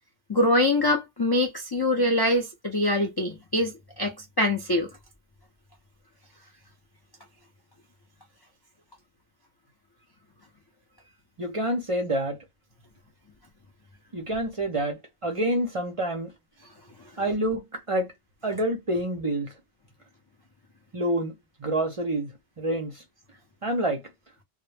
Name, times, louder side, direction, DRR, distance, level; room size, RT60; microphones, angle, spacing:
voice 1, 0.3-4.9, left 1 dB, 40° left, 0.3 m, -24 dB
voice 2, 11.4-12.4 14.1-16.3 17.2-18.1 18.4-19.5 20.9-21.3 21.6-22.3 22.6-22.9 23.6-24.0, right 1 dB, 35° right, 0.6 m, -27 dB
2.1 x 2.0 x 3.2 m
omnidirectional pair, 1.2 m